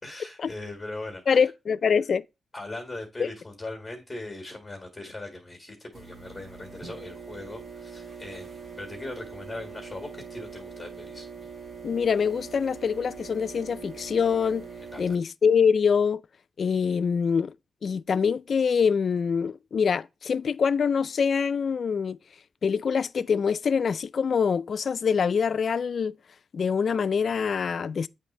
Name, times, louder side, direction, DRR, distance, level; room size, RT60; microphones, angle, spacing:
voice 1, 0.0-1.4 2.5-11.3 14.9-15.2, left 2 dB, 20° left, 1.7 m, -40 dB
voice 2, 1.3-2.2 3.2-3.3 11.8-14.7 15.0-16.2 16.6-17.5 17.8-22.2 22.6-26.1 26.5-28.1, left 6 dB, 60° left, 0.3 m, -24 dB
sound 1, 5.9-15.1, right 5 dB, 50° right, 1.6 m, -42 dB
8.3 x 3.3 x 4.1 m
cardioid pair, 90°, 0 cm